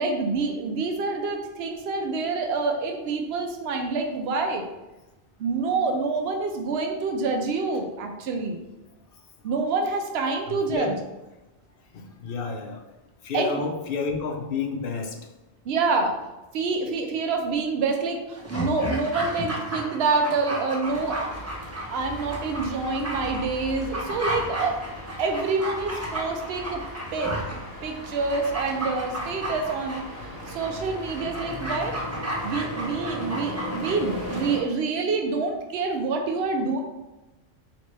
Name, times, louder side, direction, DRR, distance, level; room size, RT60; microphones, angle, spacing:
voice 1, 0.0-4.6 5.4-8.6 9.4-11.0 13.3-13.6 15.6-16.1 16.5-21.2 21.9-24.8 25.2-26.8 27.1-27.3 27.8-32.0 32.4-36.8, right 4 dB, 85° right, 4 dB, 0.8 m, -27 dB
voice 2, 10.5-10.9 11.9-12.8 13.2-15.2, left 4 dB, 70° left, 3 dB, 0.8 m, -30 dB
Dog, 18.3-34.6 34.9-35.0, right 1 dB, 15° right, 0.8 m, -33 dB
sound 1, 20.8-34.6, left 1 dB, 15° left, 1.1 m, -38 dB
4.2 x 3.0 x 3.2 m, 1.0 s
omnidirectional pair, 1.0 m